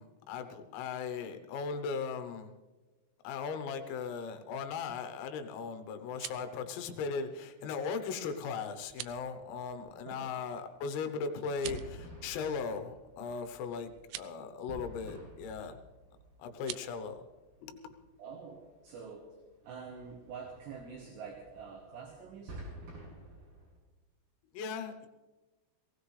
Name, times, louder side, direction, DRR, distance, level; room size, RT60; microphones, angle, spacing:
voice 1, 0.0-2.5 3.2-15.8 16.4-17.3 17.6-18.0 24.5-25.1, left 5 dB, 85° left, 8 dB, 3.7 m, -38 dB
sound 1, 6.0-6.5 8.8-9.2 11.5-12.0 14.0-14.3 16.6-16.9, right 15 dB, 85° right, 2.6 m, -44 dB
sound 2, 8.8-23.8, right 1 dB, 45° right, 6.7 m, -52 dB
voice 2, 18.2-19.3 19.6-22.7, right 5 dB, 70° right, 2 dB, 3.1 m, -46 dB
20.0 x 17.0 x 3.2 m, 1.2 s
omnidirectional pair, 5.9 m